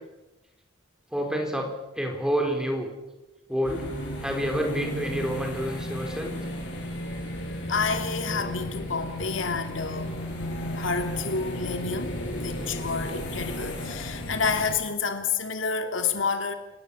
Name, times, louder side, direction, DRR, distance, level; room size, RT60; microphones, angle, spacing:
voice 1, 1.1-2.9 3.5-3.9 4.2-6.4, equal, 5° right, 3 dB, 4.2 m, -28 dB
sound 1, 3.6-14.8, left 1 dB, 65° left, 7.9 m, -34 dB
voice 2, 7.7-10.2 10.7-16.5, left 5 dB, 80° left, 6 dB, 2.7 m, -29 dB
29.5 x 18.5 x 7.2 m, 1.0 s
head